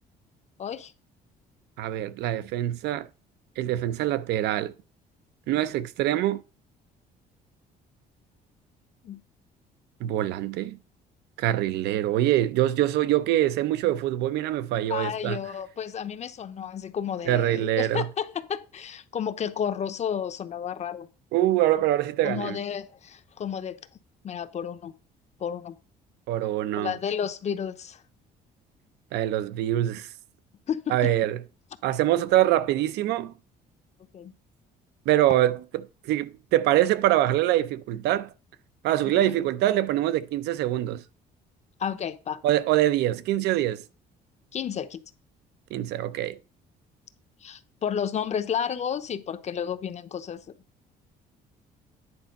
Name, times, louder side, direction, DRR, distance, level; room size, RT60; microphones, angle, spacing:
voice 1, 0.6-0.9 9.0-9.2 14.9-21.1 22.2-23.8 24.2-24.9 25.4-25.7 26.8-28.0 30.7-30.9 34.1-34.3 39.3-39.4 41.8-42.4 44.5-45.0 47.4-50.4, left 8 dB, 40° left, 0.8 m, -31 dB
voice 2, 1.8-3.1 3.6-4.7 5.5-6.4 10.0-10.8 11.4-15.4 17.3-18.1 21.3-22.6 26.3-26.9 29.1-30.1 30.9-31.4 31.8-33.3 35.1-35.6 36.0-38.3 38.8-41.0 42.4-43.8 45.7-46.4, right 13 dB, 85° right, 0.6 m, -24 dB
9.7 x 4.4 x 5.3 m
cardioid pair, 110°, 17 cm